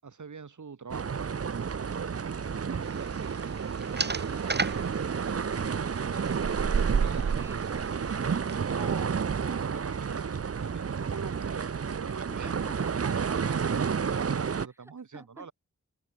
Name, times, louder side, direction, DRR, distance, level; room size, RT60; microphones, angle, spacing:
voice 1, 0.0-3.1 7.0-7.3 8.6-15.5, right 5 dB, 85° right, 6.8 m, -44 dB
sound 1, 0.9-14.7, right 6 dB, 55° right, 0.9 m, -30 dB
sound 2, 2.8-8.6, right 3 dB, 35° right, 2.2 m, -38 dB
voice 2, 3.8-9.7 12.0-13.6 14.9-15.5, right 1 dB, 10° right, 3.2 m, -52 dB
open air
wide cardioid pair, 85°, 29 cm